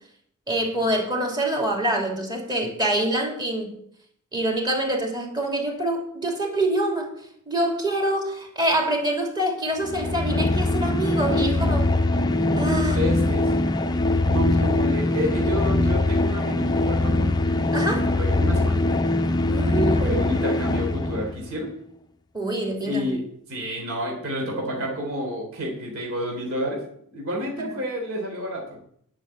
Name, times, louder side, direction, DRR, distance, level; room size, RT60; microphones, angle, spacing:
voice 1, 0.5-3.7 4.3-7.1 7.5-11.9 12.6-13.7 17.7-18.1 19.5-20.3 22.3-23.1 27.7-27.8, right 1 dB, 20° right, 0 dB, 2.8 m, -26 dB
sound 1, 9.8-21.4, left 2 dB, 20° left, 0.6 m, -22 dB
voice 2, 12.3-13.5 14.2-17.3 18.2-18.8 20.0-21.7 22.8-23.2 23.5-26.8 27.1-28.8, equal, 65° right, -1 dB, 3.6 m, -29 dB
11.0 x 6.3 x 8.5 m, 0.68 s
head